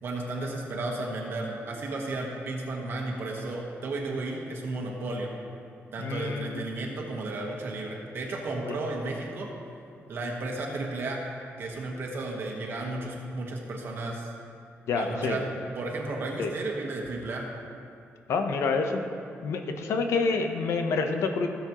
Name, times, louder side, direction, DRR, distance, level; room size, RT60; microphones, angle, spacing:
voice 1, 0.0-5.3 5.9-9.5 10.1-11.2 11.6-14.3 14.9-15.5 15.8-17.5, right 2 dB, 55° right, -2 dB, 1.3 m, -33 dB
voice 2, 6.0-6.6 8.7-8.8 14.9-15.4 16.4-16.5 18.3-19.0 19.4-21.5, left 4 dB, 80° left, 5 dB, 0.8 m, -27 dB
16.5 x 7.0 x 3.0 m, 2.5 s
wide cardioid pair, 160°, 5 cm